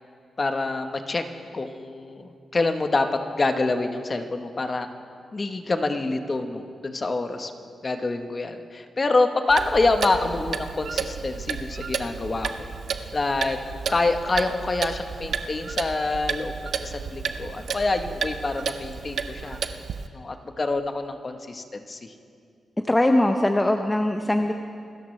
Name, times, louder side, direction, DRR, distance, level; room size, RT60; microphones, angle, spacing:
voice 1, 0.4-1.2 1.5-3.1 3.4-4.9 5.3-7.5 7.8-12.7 13.1-13.6 13.9-16.5 16.8-19.6 20.1-22.1, left 3 dB, 35° left, 7 dB, 1.1 m, -26 dB
Clock, 9.5-20.1, right 6 dB, 75° right, 0.7 m, -32 dB
voice 2, 22.8-24.5, left 1 dB, 15° left, 5 dB, 0.7 m, -21 dB
26.5 x 13.5 x 3.3 m, 2.3 s
cardioid pair, 85°, 0 cm